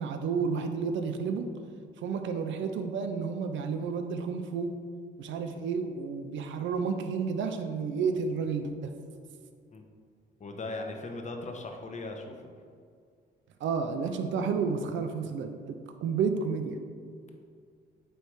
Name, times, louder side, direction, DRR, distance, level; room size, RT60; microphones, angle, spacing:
voice 1, 0.0-1.5 2.0-4.8 5.2-8.9 13.6-16.8, right 5 dB, 75° right, 7 dB, 0.6 m, -31 dB
voice 2, 10.4-12.3, left 2 dB, 35° left, 3 dB, 1.0 m, -38 dB
8.6 x 3.4 x 4.7 m, 2.2 s
cardioid pair, 90°, 20 cm